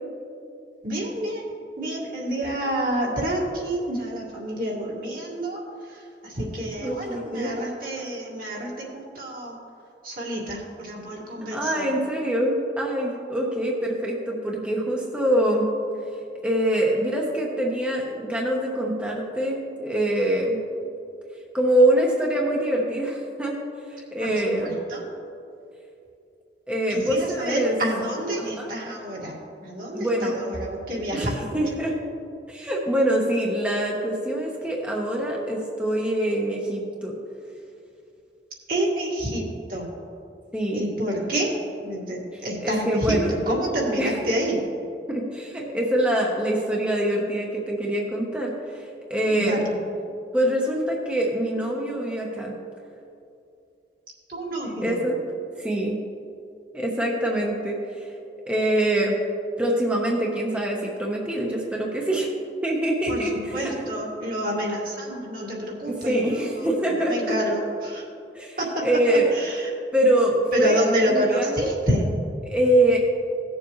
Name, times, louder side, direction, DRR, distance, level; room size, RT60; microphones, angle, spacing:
voice 1, 0.8-1.5 1.8-5.6 6.2-9.6 10.0-11.9 24.2-25.0 26.9-29.4 29.6-31.6 38.7-39.4 39.7-39.9 40.7-41.5 41.8-43.2 43.5-44.6 49.3-49.6 54.3-55.0 63.1-63.2 63.5-66.7 67.1-68.0 69.6-69.7 70.5-72.0, right 1 dB, 50° right, -4 dB, 1.9 m, -28 dB
voice 2, 6.8-7.5 11.5-15.7 16.4-20.6 21.5-23.6 23.9-24.7 26.7-27.8 28.4-28.7 29.9-30.4 31.1-31.9 32.5-37.1 40.5-40.9 42.3-43.3 43.9-44.2 45.1-49.7 50.3-52.5 54.6-55.2 55.6-56.0 56.7-58.1 58.5-59.1 59.6-62.3 62.6-63.9 65.8-67.4 68.3-69.3 69.9-70.8 71.1-71.8 72.4-73.0, right 1 dB, 5° right, -2 dB, 1.0 m, -24 dB
17.5 x 7.1 x 3.1 m, 2.5 s
head